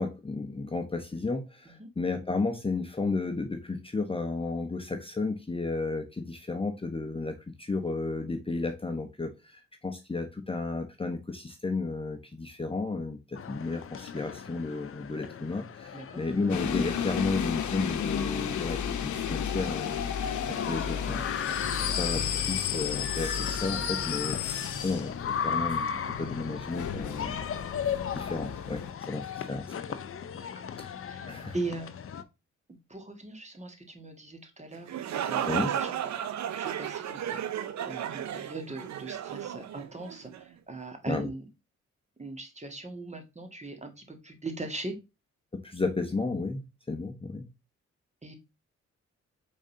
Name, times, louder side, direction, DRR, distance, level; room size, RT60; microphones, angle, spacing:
voice 1, 0.0-20.0 20.5-21.2 21.7-25.9 26.2-27.4 28.1-29.8 30.8-30.9 31.3-31.5 35.5-35.7 41.1-41.3 45.5-46.6 46.9-47.5, left 3 dB, 20° left, 0.9 m, -33 dB
sound 1, 13.3-32.2, left 7 dB, 50° left, 0.6 m, -37 dB
sound 2, 16.5-28.9, left 8 dB, 80° left, 0.8 m, -33 dB
voice 2, 30.3-30.7 31.0-31.3 31.5-32.0 32.9-35.9 36.5-37.4 37.8-41.4 42.2-44.9 48.2-48.3, right 2 dB, 25° right, 1.7 m, -40 dB
sound 3, 34.7-40.4, right 10 dB, 70° right, 0.6 m, -34 dB
5.2 x 3.8 x 2.6 m
cardioid pair, 60°, 29 cm